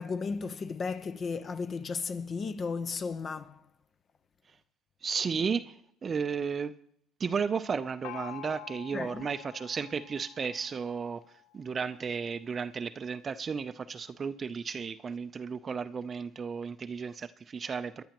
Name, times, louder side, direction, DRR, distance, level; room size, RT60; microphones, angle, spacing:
voice 1, 0.0-3.6 8.9-9.3, left 5 dB, 35° left, 0.7 m, -34 dB
voice 2, 5.0-5.7 6.0-6.7 7.2-11.2 11.5-18.0, right 6 dB, 35° right, 0.5 m, -33 dB
Gong, 8.0-11.6, left 15 dB, 70° left, 0.5 m, -47 dB
24.0 x 10.5 x 3.0 m
supercardioid pair, 90°, 0 cm